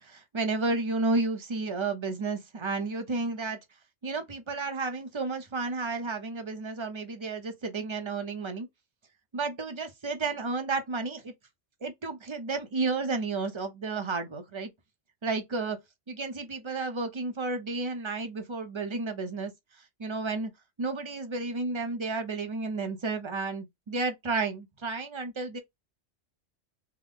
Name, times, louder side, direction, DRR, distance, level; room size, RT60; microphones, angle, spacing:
voice 1, 0.0-3.6 4.0-8.7 9.3-11.3 11.8-14.7 15.2-15.8 16.1-19.5 20.0-20.5 20.8-25.6, right 3 dB, 30° right, 0.6 m, -32 dB
3.4 x 2.0 x 3.5 m
omnidirectional pair, 1.2 m